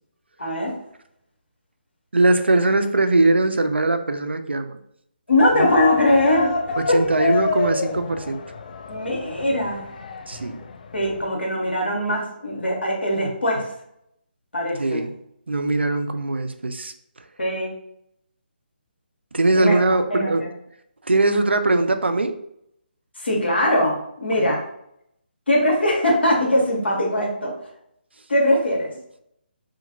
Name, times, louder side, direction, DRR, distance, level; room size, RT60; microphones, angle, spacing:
voice 1, 0.4-0.8 5.3-6.5 6.9-7.3 8.9-9.9 10.9-13.7 14.5-15.0 17.4-17.7 19.5-19.8 20.1-20.5 23.2-24.7 25.5-27.5 28.3-28.9, left 1 dB, 80° left, -1 dB, 1.1 m, -21 dB
voice 2, 2.1-4.8 5.5-5.7 6.8-8.4 10.3-10.7 14.8-15.2 15.5-16.9 19.3-20.5 21.0-22.4 24.4-24.5, right 2 dB, 85° right, 8 dB, 0.3 m, -21 dB
sound 1, 5.4-11.3, left 4 dB, 50° left, 0.3 m, -28 dB
2.5 x 2.5 x 2.8 m, 0.74 s
figure-of-eight pair, 145°, 6 cm